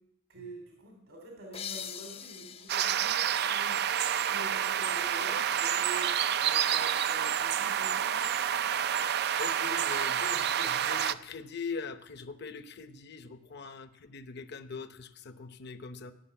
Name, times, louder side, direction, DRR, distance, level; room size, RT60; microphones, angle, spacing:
voice 1, 0.3-3.8 4.3-6.1 6.4-8.3 13.5-13.7, right 2 dB, 70° right, 2 dB, 2.9 m, -46 dB
sound 1, 1.5-5.0, left 8 dB, 30° left, 0.5 m, -45 dB
sound 2, 2.7-11.1, right 9 dB, 50° right, 0.4 m, -29 dB
voice 2, 9.4-16.1, left 4 dB, 55° left, 10 dB, 0.9 m, -42 dB
16.5 x 6.6 x 9.1 m, 0.83 s
head